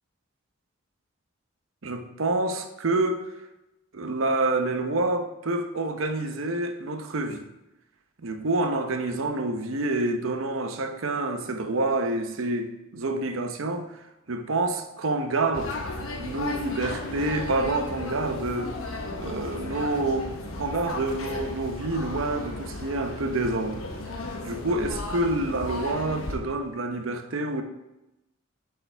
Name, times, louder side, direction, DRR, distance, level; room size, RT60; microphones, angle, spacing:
voice 1, 1.8-3.3 3.9-7.4 8.2-14.0 14.3-15.8 16.2-18.7 19.2-20.3 20.6-23.8 24.1-27.6, right 2 dB, 75° right, 0.8 m, -27 dB
sound 1, 15.5-26.4, left 2 dB, 85° left, 1.1 m, -35 dB
8.3 x 6.9 x 3.4 m
head